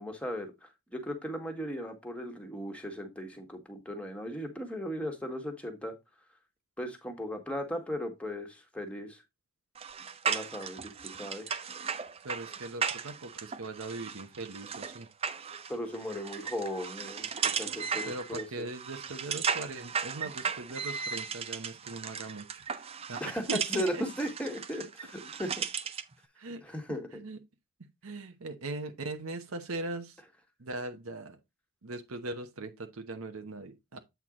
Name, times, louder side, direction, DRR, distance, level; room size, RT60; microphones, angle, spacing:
voice 1, 0.0-5.9 6.8-9.2 10.3-11.6 15.7-18.7 23.2-25.7 26.6-27.2, equal, 5° left, 1.5 m, -37 dB
sound 1, 9.7-26.1, right 6 dB, 30° right, 0.5 m, -36 dB
voice 2, 12.2-15.1 18.1-22.6 23.1-24.0 24.8-24.9 26.4-26.8 27.1-27.4 28.0-30.2 30.6-31.4 31.8-34.0, right 2 dB, 80° right, 1.0 m, -40 dB
8.3 x 4.5 x 3.7 m
head